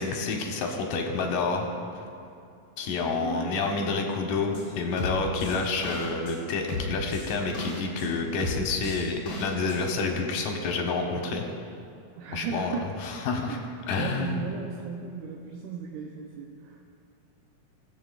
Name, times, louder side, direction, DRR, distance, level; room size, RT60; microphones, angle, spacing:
voice 1, 0.0-1.7 2.8-11.5 12.3-12.8 13.0-13.6 13.9-14.4, left 4 dB, 85° left, 2 dB, 2.5 m, -28 dB
voice 2, 3.2-3.6 12.2-13.0 13.4-16.8, right 6 dB, 80° right, 0 dB, 2.2 m, -36 dB
sound 1, 4.5-4.6 5.0-6.4 6.7-8.1 8.4-9.8 10.1-10.2, left 2 dB, 65° left, 3.2 m, -34 dB
18.0 x 7.8 x 2.4 m, 2.5 s
omnidirectional pair, 3.6 m